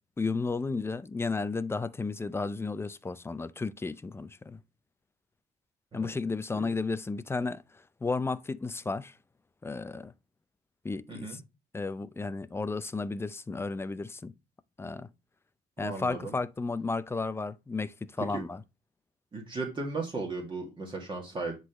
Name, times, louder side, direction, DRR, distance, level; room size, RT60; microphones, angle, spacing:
voice 1, 0.2-4.6 5.9-9.2 9.6-10.1 10.8-11.4 11.7-14.3 14.8-15.1 15.8-18.6, left 3 dB, 15° left, 0.5 m, -33 dB
voice 2, 11.1-11.4 15.8-16.3 18.3-18.4 19.3-21.6, right 3 dB, 30° right, 1.9 m, -36 dB
10.0 x 3.9 x 3.0 m
cardioid pair, 110°, 17 cm